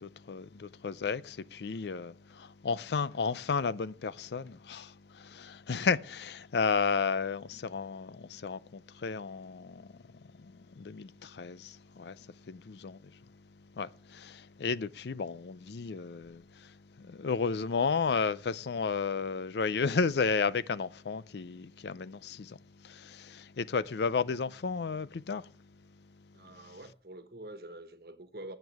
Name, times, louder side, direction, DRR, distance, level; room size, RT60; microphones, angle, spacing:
voice 1, 0.0-13.4 13.7-25.5, left 5 dB, 75° left, 0.5 m, -33 dB
voice 2, 26.3-28.6, right 1 dB, 60° right, 1.3 m, -46 dB
15.5 x 8.1 x 3.5 m
head